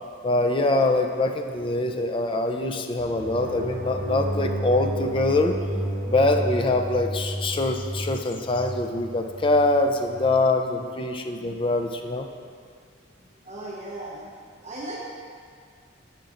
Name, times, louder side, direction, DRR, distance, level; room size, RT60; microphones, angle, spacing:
voice 1, 0.2-5.5 6.1-12.3, left 2 dB, 25° left, 5 dB, 0.4 m, -24 dB
sound 1, 3.0-10.3, equal, 65° right, 1.4 m, -32 dB
voice 2, 13.4-14.3 14.6-15.0, right 1 dB, 35° right, -6 dB, 1.0 m, -36 dB
10.0 x 8.2 x 2.5 m, 2.1 s
head